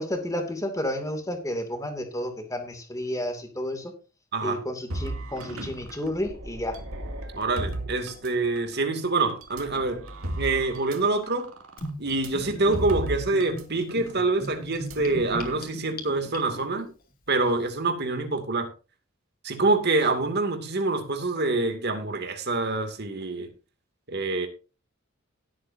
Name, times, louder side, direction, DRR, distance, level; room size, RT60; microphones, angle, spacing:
voice 1, 0.0-3.9 4.4-6.8, left 1 dB, 15° left, 2.5 m, -31 dB
sound 1, 4.9-8.8 9.4-13.6 13.9-14.1 14.7-15.6, right 1 dB, 80° right, 2.4 m, -36 dB
voice 2, 7.3-10.0 10.4-11.5 12.0-16.9 17.3-18.7 19.4-23.5 24.1-24.5, right 3 dB, 50° right, 2.5 m, -26 dB
Gurgling / Bathtub (filling or washing), 11.8-16.8, equal, 45° left, 3.0 m, -38 dB
18.0 x 8.6 x 2.7 m
head